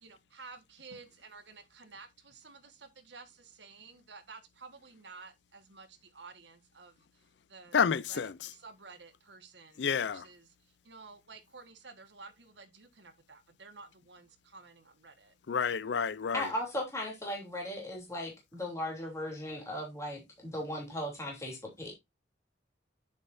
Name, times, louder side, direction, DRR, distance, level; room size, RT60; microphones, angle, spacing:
voice 1, 0.0-5.9 6.1-6.9 7.5-7.8 8.1-8.2 8.5-10.5 10.9-15.3, right 4 dB, 80° right, 1.5 m, -52 dB
voice 2, 7.7-8.3 9.8-10.2 15.5-16.4, left 6 dB, 75° left, 0.5 m, -29 dB
voice 3, 16.3-21.9, left 1 dB, 15° left, 3.1 m, -37 dB
8.9 x 7.1 x 2.6 m
head